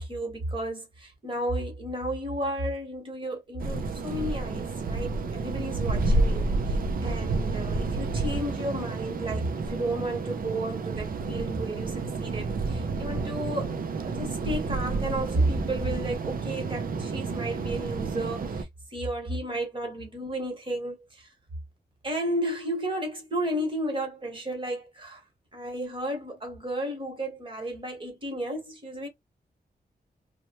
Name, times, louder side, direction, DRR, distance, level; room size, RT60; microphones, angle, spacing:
voice 1, 0.0-21.3 22.0-25.2 25.5-29.1, right 1 dB, 30° right, 1.2 m, -32 dB
sound 1, 3.6-18.6, right 3 dB, 60° right, 0.5 m, -30 dB
3.0 x 2.1 x 2.9 m
wide cardioid pair, 170°, 17 cm